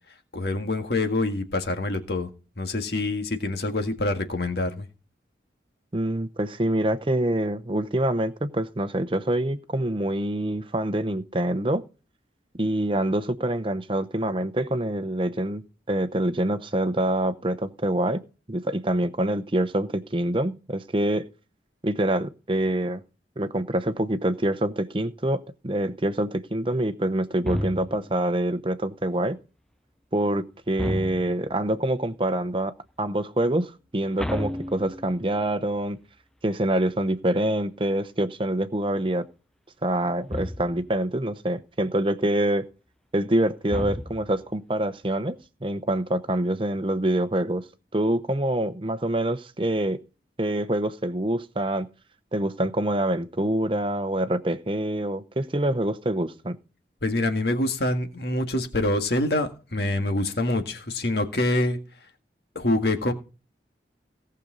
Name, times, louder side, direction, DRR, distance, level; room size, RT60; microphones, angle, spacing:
voice 1, 0.3-2.3 2.6-4.9 57.0-61.8 62.6-63.1, left 2 dB, 65° left, 1.8 m, -25 dB
voice 2, 5.9-11.8 12.6-18.2 18.5-21.3 21.8-23.0 23.4-29.4 30.1-32.7 33.0-36.0 36.4-39.2 39.8-42.7 43.1-47.6 47.9-50.0 50.4-51.9 52.3-56.6, right 1 dB, 30° right, 0.8 m, -26 dB
sound 1, 27.5-28.2 30.8-31.6 34.2-35.4 40.3-41.0 43.7-44.5, equal, 5° left, 0.6 m, -32 dB
18.0 x 6.8 x 3.9 m
head